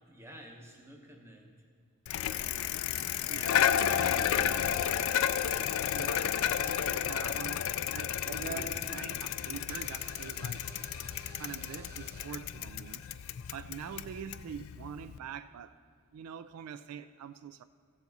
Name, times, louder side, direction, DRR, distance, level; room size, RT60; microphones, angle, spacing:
voice 1, 0.0-1.5 3.9-5.5 6.8-7.0 8.5-8.7, equal, 10° right, 2 dB, 0.9 m, -52 dB
Bicycle, 2.1-15.2, left 9 dB, 65° left, 0.3 m, -32 dB
voice 2, 3.3-4.6 5.4-5.7 5.9-6.4 6.7-7.6 7.9-10.6 11.4-13.0 13.5-15.7 16.1-17.6, right 8 dB, 80° right, 13 dB, 0.3 m, -45 dB
Door / Alarm, 3.7-12.9, right 3 dB, 40° right, 0.9 m, -49 dB
15.0 x 7.2 x 4.0 m, 2.1 s
head